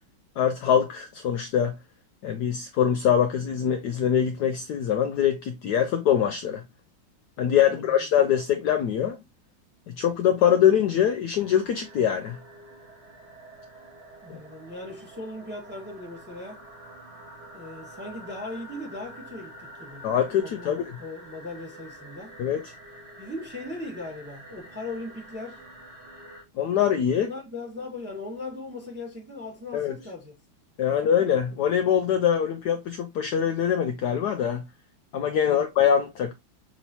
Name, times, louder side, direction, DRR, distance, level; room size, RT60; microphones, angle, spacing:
voice 1, 0.4-1.8 2.2-6.6 7.4-9.2 9.9-12.4 14.3-14.4 20.0-20.9 22.4-22.6 26.6-27.3 29.7-29.9 30.8-34.6 35.1-36.3, left 9 dB, 70° left, 1.0 m, -23 dB
sound 1, 11.4-26.4, right 1 dB, 35° right, 1.6 m, -47 dB
voice 2, 14.2-16.6 17.5-20.0 20.4-22.4 23.2-25.6 27.1-30.3 30.9-31.0 35.5-35.7, left 2 dB, 5° right, 1.1 m, -38 dB
6.1 x 3.1 x 2.7 m
omnidirectional pair, 2.1 m